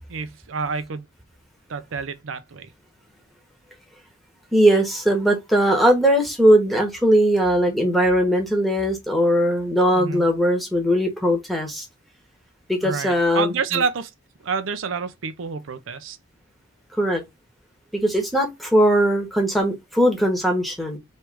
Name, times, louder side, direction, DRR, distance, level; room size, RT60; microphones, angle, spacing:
voice 1, 0.1-1.1 1.7-2.7 9.9-10.2 12.8-14.1 14.4-16.2, right 5 dB, 85° right, 0.5 m, -28 dB
voice 2, 4.5-11.8 12.7-13.8 16.9-17.2 17.9-21.0, equal, ahead, 1.1 m, -19 dB
3.2 x 3.1 x 4.7 m
head